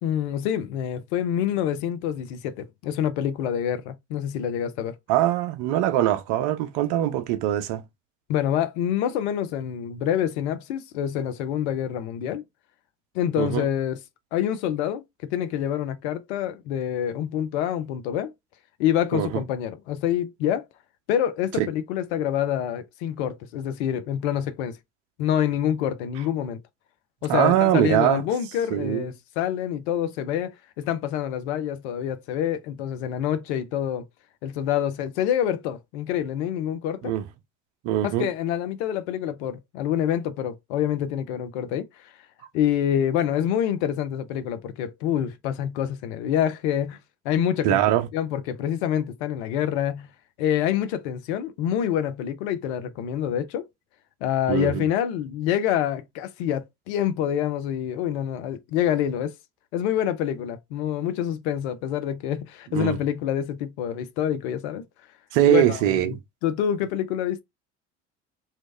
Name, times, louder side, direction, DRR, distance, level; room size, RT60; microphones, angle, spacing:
voice 1, 0.0-5.0 8.3-12.4 13.1-14.0 14.3-18.3 18.8-20.6 21.1-24.8 25.2-26.6 27.2-34.1 34.4-37.1 38.0-42.1 42.5-47.0 47.2-47.8 48.1-50.1 50.4-53.7 54.2-59.3 59.7-64.9 65.5-66.1 66.4-67.4, left 10 dB, 65° left, 0.6 m, -26 dB
voice 2, 5.1-7.8 13.4-13.6 19.1-19.4 21.6-21.7 27.3-28.3 28.7-29.1 37.0-37.2 37.8-38.3 47.6-48.1 54.5-54.9 62.7-63.0 65.3-66.2, right 13 dB, 60° right, 0.7 m, -22 dB
3.1 x 2.8 x 3.1 m
figure-of-eight pair, 55°, 36 cm